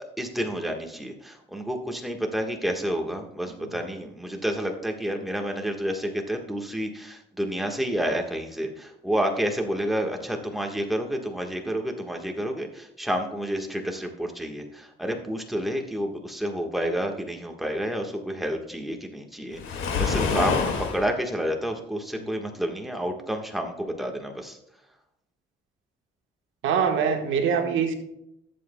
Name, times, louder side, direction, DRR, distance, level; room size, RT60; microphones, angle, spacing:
voice 1, 0.2-24.6, equal, ahead, 2 dB, 1.4 m, -29 dB
Waves surf, 19.5-21.0, left 5 dB, 85° left, 2.0 m, -26 dB
voice 2, 26.6-27.9, right 6 dB, 80° right, 4 dB, 1.3 m, -23 dB
16.0 x 7.6 x 2.2 m, 0.80 s
cardioid pair, 90°, 20 cm